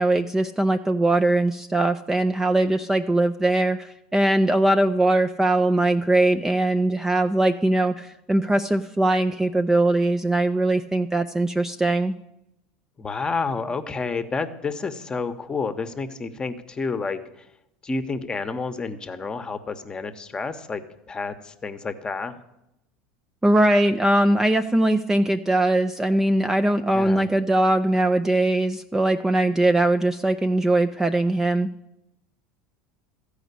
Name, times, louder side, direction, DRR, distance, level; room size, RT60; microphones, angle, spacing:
voice 1, 0.0-12.1 23.4-31.7, right 1 dB, 10° right, 8 dB, 0.4 m, -21 dB
voice 2, 13.0-17.4 17.8-20.8 21.1-22.4 26.9-27.3, left 4 dB, 20° left, 9 dB, 1.0 m, -30 dB
13.5 x 5.1 x 8.3 m, 0.87 s
hypercardioid pair, 95°, 4 cm